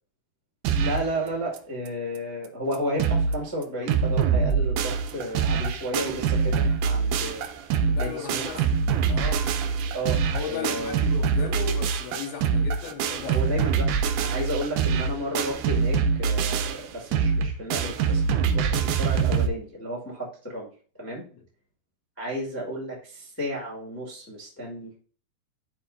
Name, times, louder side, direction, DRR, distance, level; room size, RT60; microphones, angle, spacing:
sound 1, 0.6-1.1 1.6-1.7 1.9-2.0 2.4-2.5 2.7-3.3 3.6-19.5, right 6 dB, 85° right, 1.7 m, -24 dB
voice 1, 0.7-7.4 8.0-8.6 9.9-11.0 13.2-13.9 14.2-18.2 18.5-20.7 21.0-21.2 22.2-25.0, equal, 20° left, 0.3 m, -32 dB
voice 2, 7.9-8.7 9.1-9.4 10.3-13.4, left 7 dB, 90° left, 3.0 m, -36 dB
11.5 x 4.4 x 2.7 m
omnidirectional pair, 4.2 m